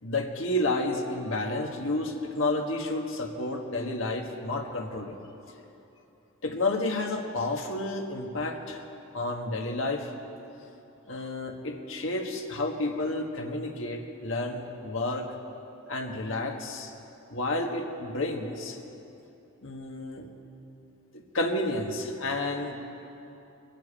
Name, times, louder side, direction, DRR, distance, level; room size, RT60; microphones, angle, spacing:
voice 1, 0.0-5.2 6.4-8.9 9.1-10.1 11.1-15.3 15.9-16.9 17.3-18.8 19.6-20.3 21.1-22.9, left 2 dB, 65° left, 2 dB, 1.5 m, -31 dB
21.0 x 7.5 x 8.7 m, 2.9 s
head